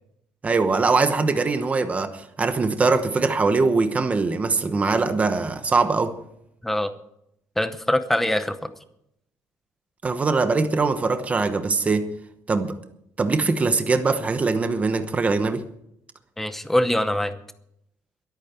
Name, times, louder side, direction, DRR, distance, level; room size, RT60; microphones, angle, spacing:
voice 1, 0.4-6.2 10.0-12.1 12.5-12.8 13.2-15.6, right 4 dB, 20° right, 1.0 m, -22 dB
voice 2, 7.6-8.7 16.4-17.3, left 1 dB, 5° left, 0.8 m, -23 dB
23.0 x 8.8 x 4.5 m
cardioid pair, 180°, 7 cm